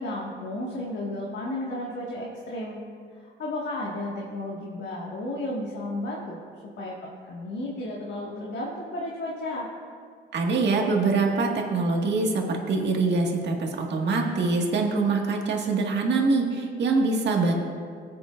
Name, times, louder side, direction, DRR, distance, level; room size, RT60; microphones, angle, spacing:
voice 1, 0.0-2.8 3.1-6.4 6.8-7.0 7.2-9.7, left 1 dB, 65° left, -4 dB, 1.9 m, -33 dB
voice 2, 10.3-17.5, right 3 dB, 60° right, 0 dB, 1.9 m, -24 dB
20.5 x 8.5 x 2.5 m, 2.1 s
cardioid pair, 90°, 20 cm